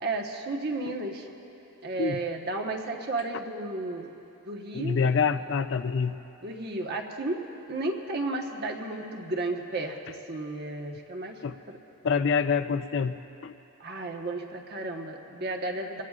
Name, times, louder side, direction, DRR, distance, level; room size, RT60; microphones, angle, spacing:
voice 1, 0.0-1.3 1.8-4.1 4.4-5.0 6.4-11.4 11.7-11.8 13.8-16.0, right 2 dB, 50° right, 1 dB, 1.3 m, -33 dB
voice 2, 4.7-6.2 11.4-11.5 12.0-13.5, left 5 dB, 60° left, 11 dB, 0.5 m, -26 dB
26.0 x 17.0 x 2.5 m, 2.9 s
head